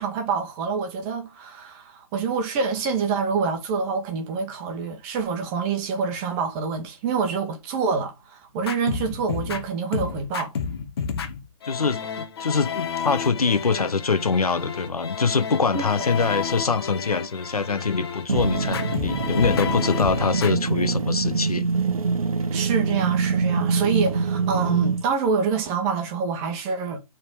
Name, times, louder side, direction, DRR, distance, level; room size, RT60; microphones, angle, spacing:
voice 1, 0.0-10.5 15.7-15.8 22.5-27.0, right 5 dB, 20° right, 1.8 m, -26 dB
sound 1, 8.6-20.6, left 6 dB, 40° left, 1.5 m, -31 dB
voice 2, 11.6-21.7, left 4 dB, 70° left, 1.3 m, -24 dB
sound 2, 18.3-25.1, right 4 dB, 65° right, 1.1 m, -25 dB
6.8 x 4.2 x 5.3 m
figure-of-eight pair, 145°, 20 cm